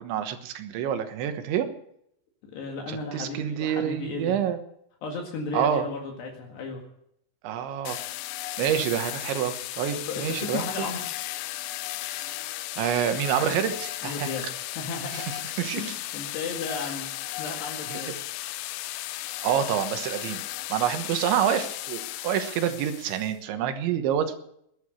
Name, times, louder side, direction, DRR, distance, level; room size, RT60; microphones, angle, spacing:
voice 1, 0.0-1.7 2.9-4.6 5.5-5.9 7.4-8.0 8.6-10.9 12.1-12.3 12.8-14.3 15.1-15.2 15.6-15.9 17.9-18.0 19.4-20.4 20.7-24.4, right 9 dB, 80° right, 8 dB, 3.6 m, -27 dB
voice 2, 2.5-4.4 5.0-6.8 9.9-11.1 14.0-14.5 14.7-15.3 15.7-18.1, left 4 dB, 65° left, 1 dB, 3.9 m, -34 dB
sound 1, 7.9-23.3, left 16 dB, 80° left, 3.0 m, -35 dB
20.5 x 10.5 x 6.3 m, 0.72 s
omnidirectional pair, 5.3 m